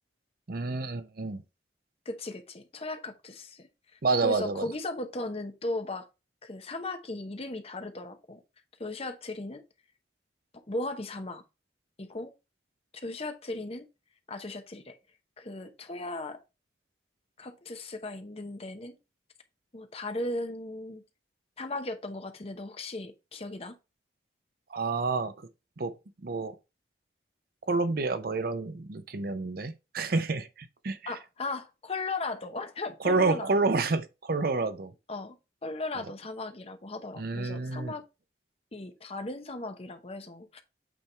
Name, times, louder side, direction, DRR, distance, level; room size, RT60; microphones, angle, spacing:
voice 1, 0.5-1.4 4.0-4.7 24.7-25.5 25.8-26.6 27.7-31.0 33.0-34.9 37.2-37.9, right 3 dB, 55° right, 0.6 m, -29 dB
voice 2, 2.0-6.1 6.4-8.4 8.8-9.6 10.5-11.4 12.0-12.3 12.9-13.9 14.3-15.0 15.4-16.4 17.4-19.0 19.7-21.0 21.6-23.7 31.1-33.5 35.1-35.4 35.6-38.0 38.7-40.6, left 2 dB, 35° left, 0.9 m, -37 dB
8.4 x 3.5 x 4.3 m
head